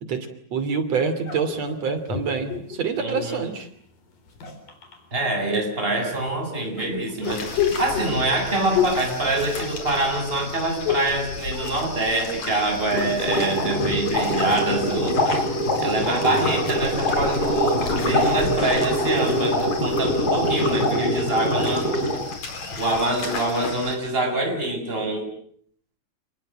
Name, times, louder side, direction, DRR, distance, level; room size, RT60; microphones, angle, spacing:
voice 1, 0.0-3.7 16.2-16.4, right 5 dB, 50° right, 10 dB, 3.7 m, -27 dB
sound 1, 1.3-3.5 4.2-5.0 6.1-10.1 10.3-11.2 11.5-12.4 12.7-15.9, left 9 dB, 85° left, 5.6 m, -31 dB
voice 2, 3.0-3.4 5.1-15.5 15.8-21.9 22.8-25.3, right 2 dB, 15° right, 3 dB, 7.7 m, -25 dB
sound 2, 7.2-24.0, left 4 dB, 55° left, 5.5 m, -34 dB
sound 3, 12.9-22.3, equal, 25° left, 6.9 m, -24 dB
29.5 x 20.0 x 8.9 m, 0.63 s
omnidirectional pair, 3.8 m